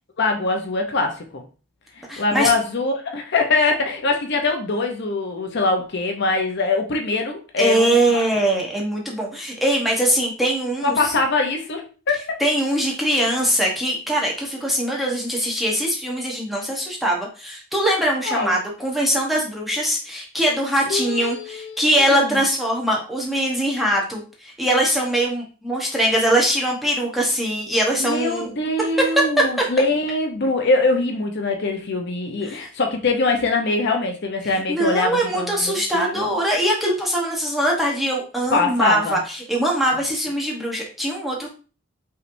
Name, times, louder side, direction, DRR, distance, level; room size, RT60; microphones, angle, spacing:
voice 1, 0.2-1.4 2.2-8.2 10.8-12.4 18.2-18.5 20.9-22.4 28.0-36.3 38.5-39.2, left 3 dB, 50° left, 3 dB, 0.7 m, -23 dB
voice 2, 2.1-2.5 7.6-11.1 12.4-28.5 29.2-29.3 32.4-32.6 34.4-41.5, right 1 dB, ahead, -2 dB, 1.0 m, -22 dB
5.5 x 3.2 x 2.6 m, 0.37 s
head